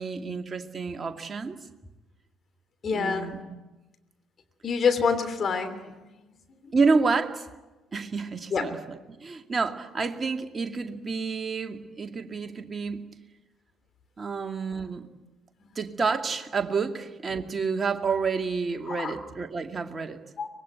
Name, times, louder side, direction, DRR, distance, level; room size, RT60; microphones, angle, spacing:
voice 1, 0.0-1.6 2.9-3.4 6.7-7.5 7.9-13.0 14.2-15.1 15.8-20.2, right 4 dB, 30° right, 5 dB, 2.3 m, -29 dB
voice 2, 2.8-3.3 4.6-5.8 8.5-8.6 18.9-19.1 20.4-20.5, left 5 dB, 40° left, 8 dB, 3.1 m, -26 dB
24.5 x 21.0 x 9.4 m, 1.1 s
figure-of-eight pair, 50°, 0 cm